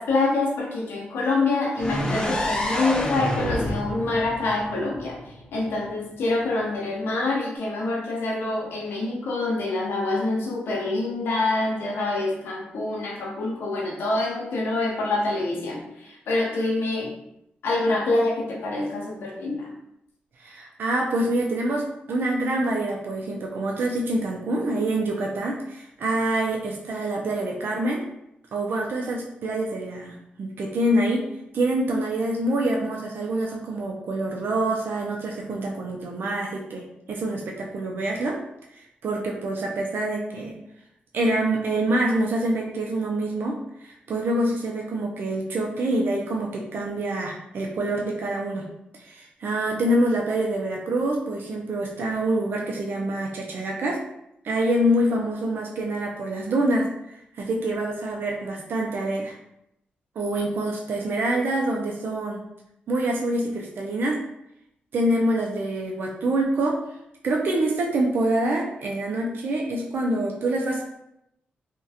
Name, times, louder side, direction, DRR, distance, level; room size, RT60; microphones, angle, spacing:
voice 1, 0.0-5.2 5.5-17.1 17.6-19.7, left 2 dB, 80° left, -2 dB, 0.5 m, -26 dB
sound 1, 1.8-5.6, left 1 dB, 20° left, 0.5 m, -28 dB
voice 2, 20.4-28.0 28.5-31.3 31.5-38.4 38.7-40.6 41.1-48.7 48.9-54.0 54.4-59.4 60.2-62.4 62.9-64.2 64.9-66.8 67.2-70.8, right 1 dB, 65° right, -1 dB, 0.4 m, -26 dB
2.3 x 2.1 x 2.7 m, 0.79 s
cardioid pair, 60°, 4 cm